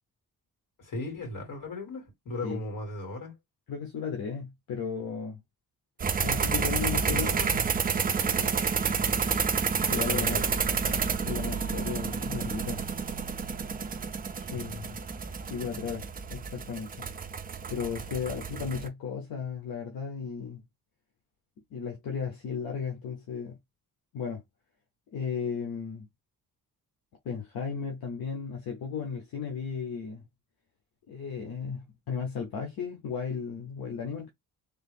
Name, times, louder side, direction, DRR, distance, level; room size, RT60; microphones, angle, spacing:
voice 1, 0.8-3.3 7.1-7.7 9.7-11.0 14.4-14.7 18.5-18.7, left 2 dB, 60° left, 2.3 m, -38 dB
voice 2, 3.7-5.4 6.2-7.3 8.2-8.5 9.8-10.4 11.2-12.8 14.5-15.0 15.5-17.1 17.7-20.6 21.7-23.6 24.1-24.4 25.1-26.1 27.2-30.2 31.1-34.3, left 6 dB, 85° left, 0.9 m, -35 dB
sound 1, 6.0-18.9, right 6 dB, 25° right, 0.3 m, -30 dB
3.4 x 2.5 x 3.5 m
wide cardioid pair, 160°, 35 cm